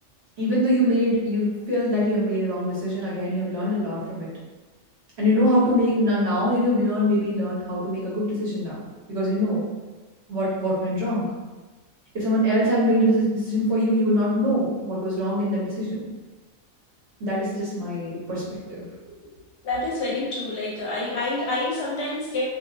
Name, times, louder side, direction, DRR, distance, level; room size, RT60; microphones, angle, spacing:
voice 1, 0.4-4.3 5.2-8.8 9.1-9.6 10.3-11.3 12.1-16.1 17.2-18.4 18.7-18.9, equal, 55° right, -8 dB, 1.1 m, -23 dB
voice 2, 19.6-22.4, left 2 dB, 65° left, -5 dB, 0.8 m, -27 dB
2.7 x 2.2 x 2.3 m, 1.2 s
omnidirectional pair, 1.4 m